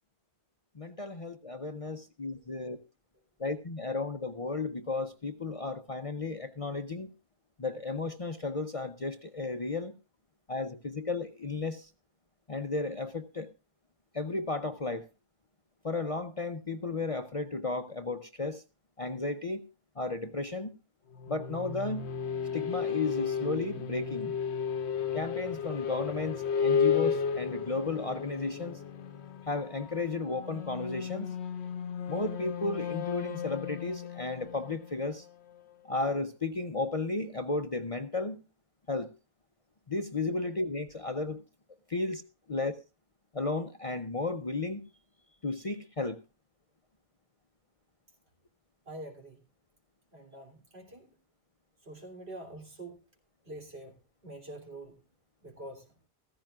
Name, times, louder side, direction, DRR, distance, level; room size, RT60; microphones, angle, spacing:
voice 1, 0.8-2.8 3.4-7.1 7.6-9.9 10.5-11.9 12.5-13.5 14.1-15.1 15.8-18.6 19.0-19.6 20.0-20.7 21.3-22.1 22.5-24.3 25.1-28.8 29.5-31.3 32.1-35.2 35.8-38.4 38.9-39.1 39.9-41.4 41.9-42.2 42.5-42.8 43.3-44.8 45.4-46.2, left 3 dB, 35° left, 7 dB, 0.8 m, -34 dB
sound 1, 21.1-35.8, left 7 dB, 70° left, 1.1 m, -34 dB
voice 2, 48.9-49.4 50.1-51.1 51.8-53.0 53.5-54.0 54.2-55.0 55.4-55.9, right 1 dB, 65° right, 2 dB, 3.6 m, -45 dB
15.0 x 15.0 x 2.4 m, 0.30 s
omnidirectional pair, 1.2 m